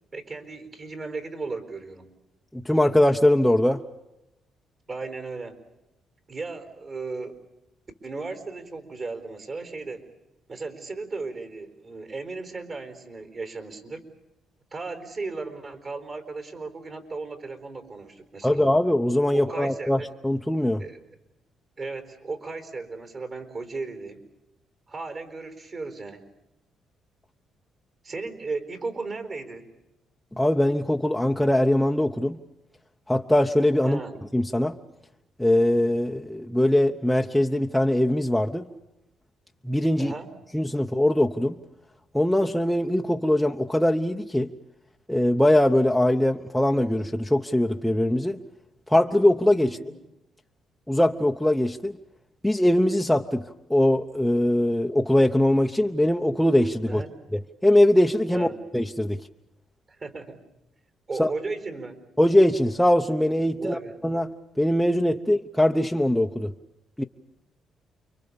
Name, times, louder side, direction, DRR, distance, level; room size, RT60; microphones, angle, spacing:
voice 1, 0.1-2.1 4.9-5.6 6.3-7.4 8.0-10.1 10.5-14.0 14.7-18.6 19.3-20.1 20.8-21.0 21.8-24.3 24.9-26.3 28.0-29.7 33.8-34.2 40.0-40.3 49.7-49.9 56.9-57.1 58.3-58.6 59.9-60.4 61.1-62.0 63.6-64.0, right 3 dB, 40° right, 7 dB, 4.1 m, -35 dB
voice 2, 2.5-3.8 18.4-20.8 30.3-32.4 33.1-34.0 34.3-34.8 35.4-38.6 39.6-40.1 40.5-41.6 42.1-44.5 45.1-48.4 48.9-49.8 50.9-52.0 52.4-53.4 53.7-57.0 57.6-58.5 58.7-59.2 61.2-61.3 62.2-66.5 67.0-67.1, left 1 dB, 5° left, 1 dB, 0.9 m, -21 dB
29.5 x 23.5 x 7.0 m, 0.95 s
cardioid pair, 90°, 0 cm